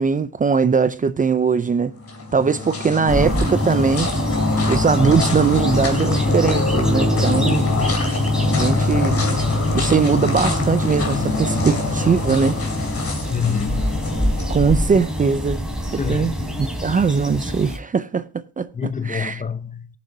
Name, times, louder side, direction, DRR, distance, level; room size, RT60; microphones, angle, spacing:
voice 1, 0.0-1.9 2.3-4.1 4.7-7.7 8.5-9.2 9.7-12.6 14.5-15.6 15.9-16.3 16.6-19.4, right 5 dB, 25° right, 0.5 m, -20 dB
sound 1, 2.0-15.3, left 3 dB, 50° left, 4.4 m, -23 dB
sound 2, 3.1-17.8, equal, ahead, 3.7 m, -26 dB
voice 2, 13.3-14.2 16.0-16.5 18.7-19.9, left 6 dB, 25° left, 0.8 m, -26 dB
18.5 x 7.4 x 2.8 m
cardioid pair, 90°, 30 cm